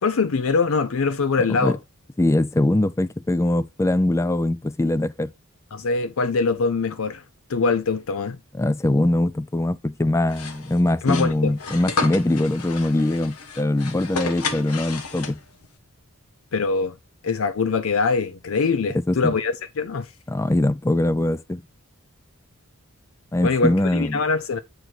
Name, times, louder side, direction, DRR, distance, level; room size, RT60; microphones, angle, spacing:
voice 1, 0.0-1.8 5.7-7.2 7.5-8.4 11.0-11.5 16.5-17.0 17.2-20.1 23.4-24.6, left 4 dB, 65° left, 0.5 m, -23 dB
voice 2, 1.4-1.8 2.2-5.3 8.5-15.4 19.1-19.3 20.3-21.6 23.3-24.2, left 1 dB, 15° left, 0.3 m, -22 dB
sound 1, 10.3-15.7, left 4 dB, 85° left, 1.3 m, -32 dB
7.9 x 4.6 x 3.9 m
head